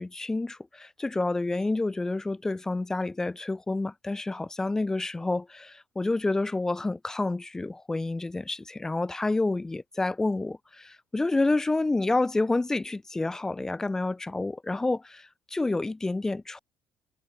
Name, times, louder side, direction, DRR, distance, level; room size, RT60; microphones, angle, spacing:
voice 1, 0.0-15.2 15.5-16.6, left 2 dB, 10° left, 0.5 m, -29 dB
cardioid pair, 125°, 5 cm